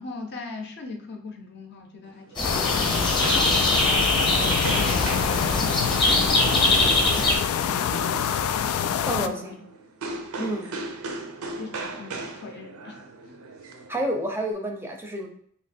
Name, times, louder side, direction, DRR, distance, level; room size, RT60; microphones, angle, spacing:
voice 1, 0.0-3.0 3.4-4.5 4.8-7.4 7.7-8.3 9.0-9.6 10.4-10.5 11.6-13.4, left 3 dB, 50° left, 3 dB, 0.7 m, -40 dB
sound 1, 2.0-14.5, right 3 dB, 90° right, 0.6 m, -38 dB
sound 2, 2.4-9.3, left 8 dB, 85° left, 0.3 m, -26 dB
sound 3, 2.4-7.4, left 1 dB, 20° left, 0.8 m, -23 dB
voice 2, 9.1-9.6 10.4-10.7 13.9-15.3, right 1 dB, 10° right, 1 dB, 0.5 m, -29 dB
3.1 x 2.9 x 4.2 m, 0.62 s
head